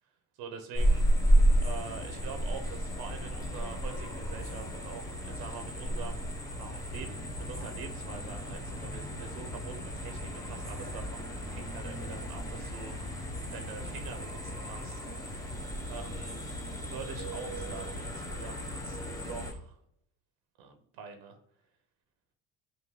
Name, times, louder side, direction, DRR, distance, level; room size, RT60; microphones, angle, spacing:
voice 1, 0.4-6.3 6.6-15.4 15.9-16.4 16.8-19.0 19.3-19.8 20.6-21.4, right 5 dB, 85° right, 6 dB, 0.8 m, -45 dB
sound 1, 0.7-19.5, equal, 10° left, 0.9 m, -32 dB
3.6 x 2.6 x 4.5 m, 0.71 s
cardioid pair, 105°, 36 cm